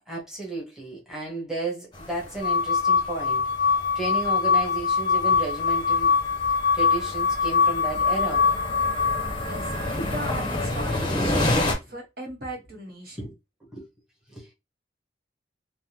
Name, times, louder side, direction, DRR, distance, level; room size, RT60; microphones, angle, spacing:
voice 1, 0.1-6.1 6.7-8.5 9.0-9.1 9.9-10.0 11.3-11.4 13.2-13.3 13.7-13.9 14.3-14.5, right 3 dB, 5° right, 1.0 m, -33 dB
sound 1, 1.9-11.7, left 1 dB, 25° left, 0.7 m, -31 dB
sound 2, 2.4-9.4, left 5 dB, 60° left, 0.3 m, -23 dB
voice 2, 9.3-13.3, equal, 55° right, 1.2 m, -38 dB
3.4 x 2.1 x 2.8 m
head